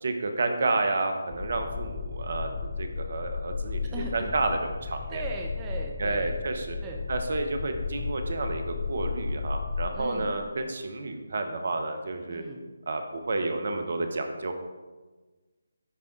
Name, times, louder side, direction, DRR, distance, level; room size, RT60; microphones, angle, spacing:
voice 1, 0.0-5.2 6.0-6.8 7.1-12.4 12.9-14.5, right 2 dB, 50° right, 6 dB, 0.8 m, -30 dB
sound 1, 1.3-9.9, left 5 dB, 25° left, 0.7 m, -34 dB
voice 2, 3.9-4.3 5.1-6.4 6.8-7.0 9.9-10.3 12.3-12.6, right 3 dB, 15° right, 0 dB, 0.6 m, -38 dB
10.0 x 3.6 x 3.9 m, 1.3 s
figure-of-eight pair, 150°, 0 cm